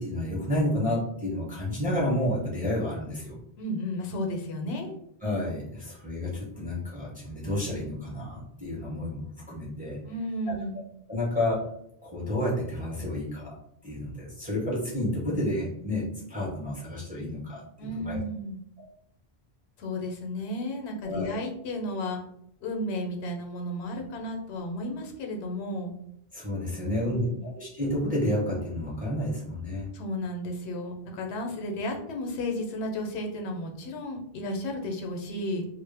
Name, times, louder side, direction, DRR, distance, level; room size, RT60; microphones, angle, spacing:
voice 1, 0.0-3.4 5.2-10.0 10.7-10.8 11.1-11.6 12.0-13.5 13.8-18.2 18.8-18.9 21.1-21.4 26.3-29.9, left 1 dB, 10° right, -6 dB, 0.6 m, -30 dB
voice 2, 3.6-5.0 10.1-10.8 17.8-18.6 19.8-22.2 22.6-25.9 26.8-27.4 29.9-35.7, left 1 dB, 90° left, 2 dB, 0.9 m, -33 dB
2.0 x 2.0 x 3.2 m, 0.71 s
omnidirectional pair, 1.1 m